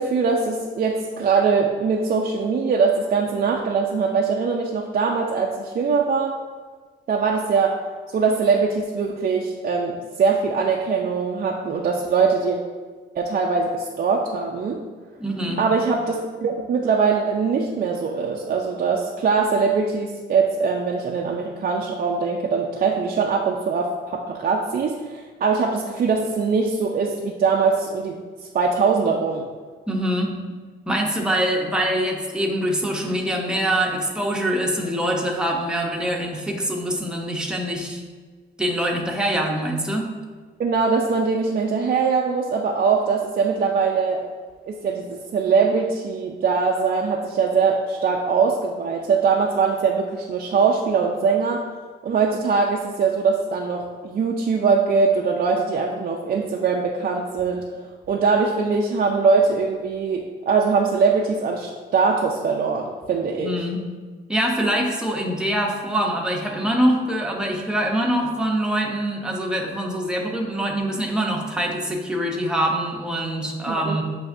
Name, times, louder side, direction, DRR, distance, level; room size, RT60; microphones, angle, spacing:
voice 1, 0.0-6.3 7.1-7.7 8.1-12.6 13.2-14.8 15.6-29.5 40.6-44.2 44.7-51.6 52.0-57.6 58.1-63.6 73.7-74.0, right 5 dB, 45° right, 0 dB, 0.4 m, -22 dB
voice 2, 15.2-15.6 29.9-30.3 30.9-38.0 38.6-40.1 63.4-63.8 64.3-74.0, right 1 dB, 5° right, 0 dB, 0.7 m, -24 dB
7.4 x 2.6 x 2.5 m, 1.5 s
cardioid pair, 90°, 20 cm